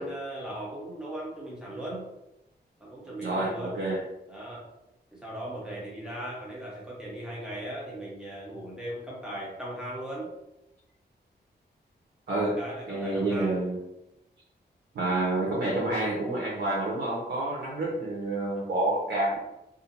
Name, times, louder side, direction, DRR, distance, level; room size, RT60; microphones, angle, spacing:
voice 1, 0.0-2.1 2.8-3.8 4.3-4.7 5.1-10.3 12.4-13.6 17.8-17.9 18.5-18.7, right 1 dB, 5° right, -5 dB, 0.8 m, -38 dB
voice 2, 3.2-4.0 12.3-12.6 12.9-13.8 14.9-19.4, right 2 dB, 85° right, -6 dB, 0.7 m, -28 dB
2.5 x 2.0 x 2.8 m, 0.90 s
wide cardioid pair, 110°, 18 cm